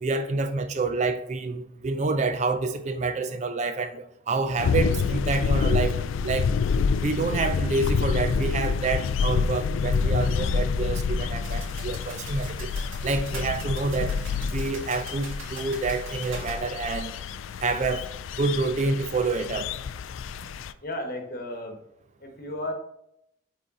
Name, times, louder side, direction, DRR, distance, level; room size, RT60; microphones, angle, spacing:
voice 1, 0.0-6.5 7.0-12.7 13.0-14.2 14.5-17.1 17.6-18.1 18.4-19.7, right 3 dB, 35° right, 0.3 m, -28 dB
sound 1, 4.6-20.7, left 5 dB, 75° left, 0.3 m, -28 dB
sound 2, 11.4-16.6, right 2 dB, 80° right, 2.2 m, -43 dB
voice 2, 20.8-21.8 22.2-22.7, left 1 dB, 45° left, 1.1 m, -34 dB
6.1 x 4.0 x 4.0 m
head